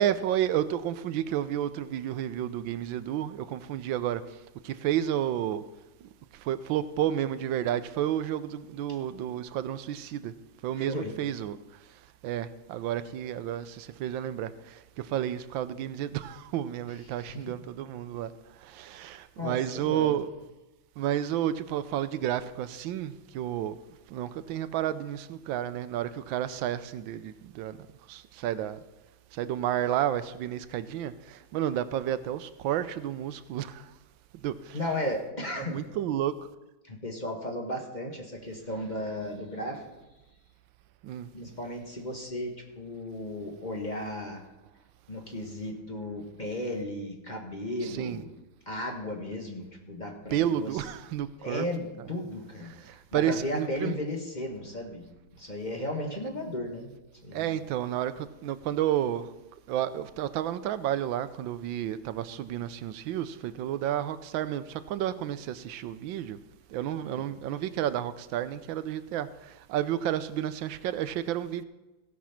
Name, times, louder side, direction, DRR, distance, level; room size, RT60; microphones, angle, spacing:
voice 1, 0.0-4.2 4.6-5.6 6.3-10.3 10.6-11.6 12.2-18.3 18.6-20.3 21.0-23.8 24.1-27.8 28.1-28.8 29.3-33.9 34.4-34.8 35.6-36.4 41.0-41.3 47.8-48.2 50.3-51.6 52.7-54.0 57.3-59.3 59.7-66.4 66.7-71.6, right 11 dB, 90° right, 1.4 m, -31 dB
voice 2, 10.8-11.1 17.3-17.5 19.4-20.2 34.7-35.8 36.8-39.8 41.3-44.4 45.1-48.3 48.7-50.8 51.4-55.0 55.4-57.5 67.0-67.2, left 1 dB, 25° left, 1.4 m, -35 dB
16.0 x 6.1 x 5.8 m
omnidirectional pair, 2.1 m